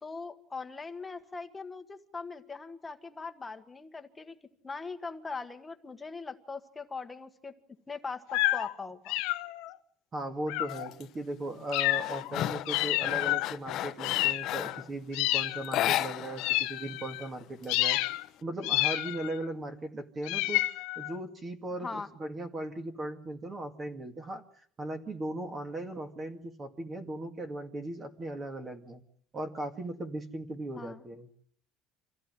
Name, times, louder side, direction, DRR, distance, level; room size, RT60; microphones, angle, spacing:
voice 1, 0.0-4.3 4.6-7.5 7.9-9.2 21.8-22.1 30.8-31.0, left 4 dB, 15° left, 6 dB, 1.6 m, -41 dB
sound 1, 8.3-8.7 9.1-9.7 10.5-10.9 11.7-12.3 12.7-13.5 14.0-14.8 15.1-15.8 16.4-17.3 17.7-18.2 18.6-19.4 20.3-21.2, left 19 dB, 80° left, 1.2 m, -30 dB
voice 2, 10.1-18.0 18.4-29.0 29.3-31.3, right 1 dB, 25° right, 7 dB, 2.2 m, -38 dB
sound 2, 10.7-11.0 11.5-14.9 15.6-16.6 16.9-17.0 17.3-18.3, left 13 dB, 50° left, 1.1 m, -34 dB
26.0 x 16.0 x 9.4 m, 0.62 s
cardioid pair, 150°, 0 cm